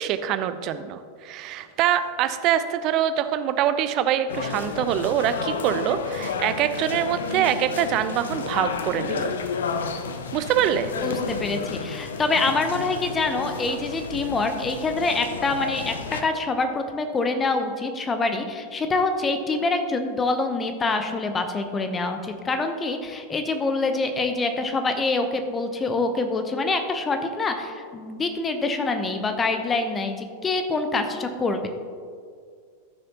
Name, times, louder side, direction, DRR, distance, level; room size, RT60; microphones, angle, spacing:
voice 1, 0.0-9.3 10.3-10.9, right 10 dB, 40° right, 11 dB, 0.5 m, -24 dB
sound 1, 4.3-16.2, left 5 dB, 65° left, 0.6 m, -31 dB
voice 2, 11.0-31.7, left 3 dB, 20° left, 7 dB, 0.8 m, -25 dB
14.0 x 6.4 x 2.9 m, 2.2 s
figure-of-eight pair, 90°, 0 cm